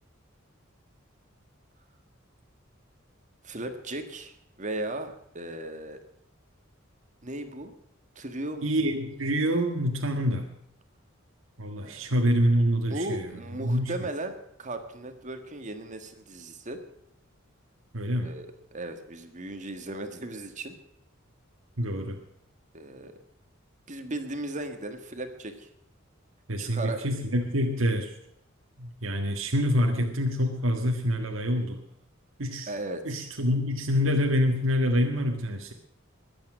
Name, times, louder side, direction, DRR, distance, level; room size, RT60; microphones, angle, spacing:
voice 1, 3.4-6.0 7.2-7.7 8.1-8.7 11.8-12.0 12.9-16.8 18.2-20.7 22.7-23.1 23.9-25.7 26.6-27.0 32.7-33.2, right 2 dB, 40° right, 7 dB, 1.7 m, -36 dB
voice 2, 8.6-10.4 11.6-13.9 17.9-18.3 21.8-22.2 26.5-28.1 28.8-31.8 32.4-32.7 33.0-35.7, equal, 80° right, 2 dB, 1.7 m, -26 dB
22.0 x 8.8 x 6.2 m, 0.74 s
head